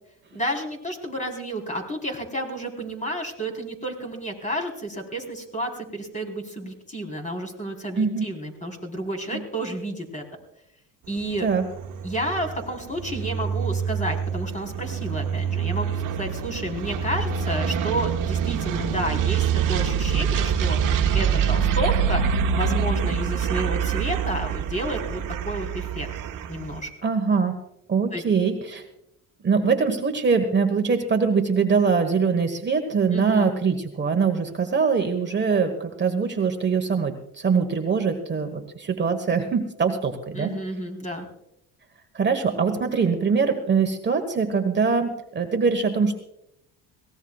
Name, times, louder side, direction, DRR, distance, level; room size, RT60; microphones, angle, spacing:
voice 1, 0.3-10.2 11.1-11.5 12.0-20.8 21.1-22.2 22.5-26.1 26.5-26.9 28.1-28.2 33.1-33.5 40.3-41.2, right 1 dB, 20° left, 3 dB, 4.1 m, -31 dB
voice 2, 8.0-8.3 9.3-9.4 11.4-11.7 27.0-27.6 27.9-28.8 29.4-40.5 42.1-46.2, right 5 dB, 30° right, 5 dB, 1.4 m, -23 dB
sound 1, 11.1-26.8, right 7 dB, 60° right, 1.3 m, -26 dB
22.5 x 18.0 x 2.4 m, 0.79 s
cardioid pair, 105°, 37 cm